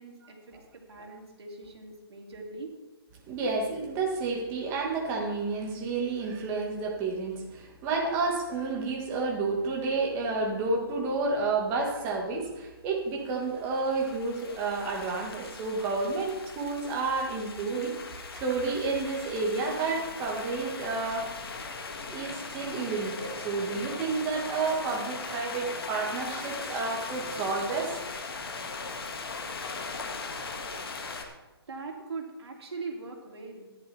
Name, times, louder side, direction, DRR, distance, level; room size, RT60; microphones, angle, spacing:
voice 1, 0.0-2.7 31.7-33.7, right 3 dB, 80° right, 1 dB, 3.0 m, -41 dB
voice 2, 3.3-21.3 22.1-27.9, right 3 dB, 20° right, -1 dB, 1.8 m, -30 dB
sound 1, 13.2-31.2, left 4 dB, 65° left, 1.9 m, -39 dB
14.0 x 10.5 x 3.5 m, 1.1 s
hypercardioid pair, 165°, 13 cm